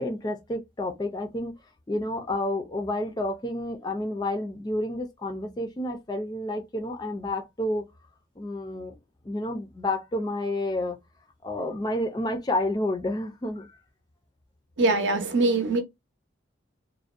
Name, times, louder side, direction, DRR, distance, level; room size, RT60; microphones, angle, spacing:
voice 1, 0.0-1.5 1.9-7.8 8.4-9.0 9.2-11.0 11.4-13.7, left 1 dB, 20° left, 0.3 m, -30 dB
voice 2, 14.8-15.8, right 2 dB, 65° right, 0.6 m, -22 dB
2.5 x 2.1 x 2.4 m
head